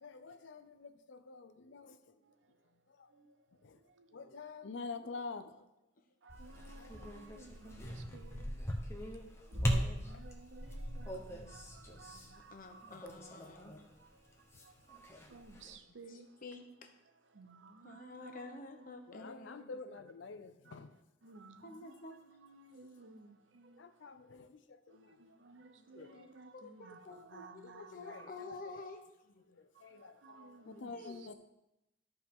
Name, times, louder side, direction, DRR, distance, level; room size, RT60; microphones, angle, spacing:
voice 1, 0.0-2.0 3.0-3.1 3.6-3.8 4.1-5.6 6.7-7.1 19.1-20.9 23.8-25.1 25.9-26.3 27.6-28.8 29.5-31.3, left 4 dB, 75° left, 0.6 m, -48 dB
voice 2, 3.9-4.5 6.2-8.5 9.5-13.1 13.5-16.3 17.3-18.9 20.6-20.8 21.2-23.9 24.9-28.3 29.7-31.3, right 3 dB, 75° right, 0.7 m, -57 dB
sound 1, 6.3-13.9 14.2-15.8, equal, 15° left, 0.9 m, -40 dB
voice 3, 12.1-13.7 16.1-16.9 17.8-19.6 21.6-22.2 25.8-25.9 26.1-26.3 26.5-29.0 30.7-31.2, left 3 dB, 45° left, 0.9 m, -50 dB
13.0 x 4.5 x 3.7 m
head